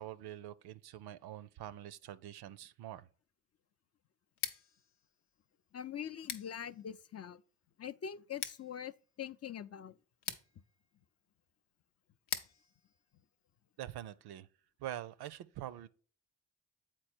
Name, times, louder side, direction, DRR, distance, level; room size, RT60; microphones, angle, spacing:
voice 1, 0.0-3.1 13.8-14.5 14.8-15.9, right 12 dB, 70° right, 0.6 m, -45 dB
Scissors, 4.3-14.1, left 8 dB, 90° left, 0.7 m, -48 dB
voice 2, 5.7-7.4 7.8-8.9 9.2-10.0, left 9 dB, 40° left, 0.5 m, -43 dB
7.6 x 4.4 x 4.3 m
hypercardioid pair, 45°, 40 cm